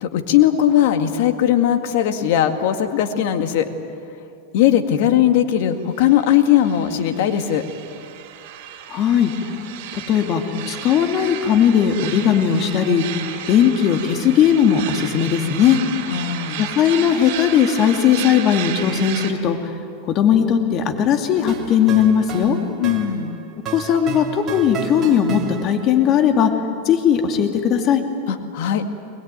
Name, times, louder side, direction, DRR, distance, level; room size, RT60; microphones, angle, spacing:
voice 1, 0.0-3.7 4.5-7.7 16.1-16.7 22.8-23.4 28.3-28.9, left 11 dB, 65° left, 6 dB, 2.0 m, -18 dB
sound 1, 5.9-19.3, right 10 dB, 60° right, 3.2 m, -33 dB
voice 2, 8.9-9.3 9.9-13.1 13.5-15.8 16.6-19.7 20.0-22.6 23.7-26.5 26.8-28.0, left 8 dB, 40° left, 4 dB, 2.6 m, -18 dB
sound 2, 21.3-26.0, right 7 dB, 30° right, 3.0 m, -32 dB
22.0 x 21.0 x 9.2 m, 2.5 s
supercardioid pair, 135°, 0 cm